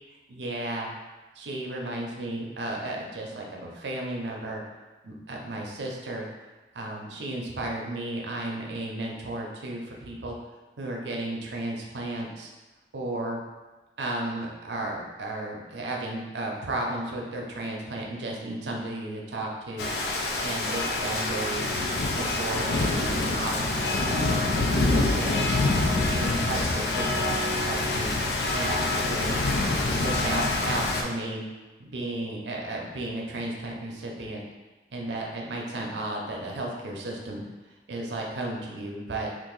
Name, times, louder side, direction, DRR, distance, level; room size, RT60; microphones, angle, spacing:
voice 1, 0.3-0.9 1.4-4.6 5.0-6.3 6.7-10.4 10.8-12.5 12.9-13.4 14.0-19.9 20.4-21.7 22.1-24.3 24.7-25.5 26.0-28.1 28.5-29.4 30.0-31.4 31.8-34.4 34.9-37.4 37.9-39.3, right 1 dB, 80° right, -1 dB, 0.6 m, -34 dB
Rain, 19.8-31.0, left 2 dB, 65° left, 0.4 m, -26 dB
2.7 x 2.5 x 3.8 m, 1.2 s
head